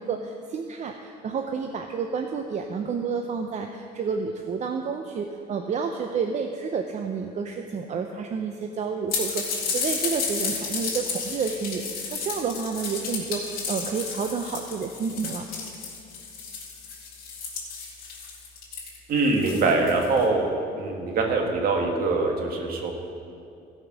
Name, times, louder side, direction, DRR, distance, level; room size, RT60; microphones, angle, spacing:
voice 1, 0.0-15.4, right 5 dB, 45° right, 4 dB, 0.7 m, -30 dB
sound 1, 9.1-20.2, left 5 dB, 65° left, 2.8 m, -32 dB
voice 2, 19.1-20.5 20.8-22.9, right 3 dB, 60° right, 2 dB, 1.9 m, -23 dB
15.5 x 5.4 x 6.3 m, 2.6 s
cardioid pair, 110°, 17 cm